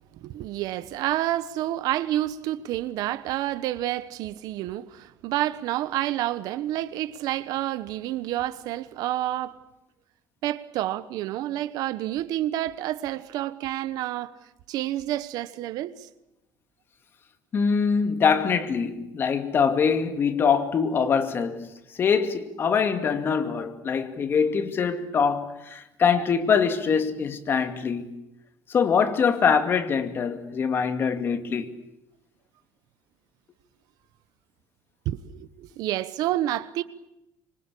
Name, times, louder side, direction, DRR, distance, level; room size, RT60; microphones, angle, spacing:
voice 1, 0.2-9.6 10.4-14.3 14.7-16.1 26.1-26.2 35.0-36.8, right 14 dB, 70° right, 1.2 m, -29 dB
voice 2, 17.5-21.7 22.0-28.1 28.7-31.7, left 6 dB, 35° left, 2.3 m, -23 dB
26.0 x 25.0 x 8.6 m
cardioid pair, 155°, 7 cm